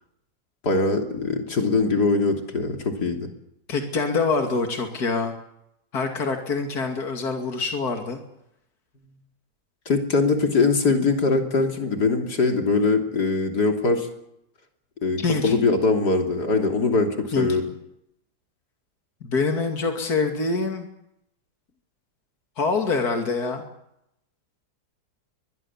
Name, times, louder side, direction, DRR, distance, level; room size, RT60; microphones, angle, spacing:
voice 1, 0.6-3.3 9.9-14.1 15.0-17.6, left 3 dB, 90° left, 4 dB, 3.7 m, -22 dB
voice 2, 3.7-5.3 5.9-8.2 15.2-15.5 17.3-17.5 19.2-20.9 22.6-23.6, left 4 dB, 70° left, 4 dB, 3.1 m, -25 dB
23.5 x 22.0 x 7.3 m, 0.80 s
omnidirectional pair, 1.7 m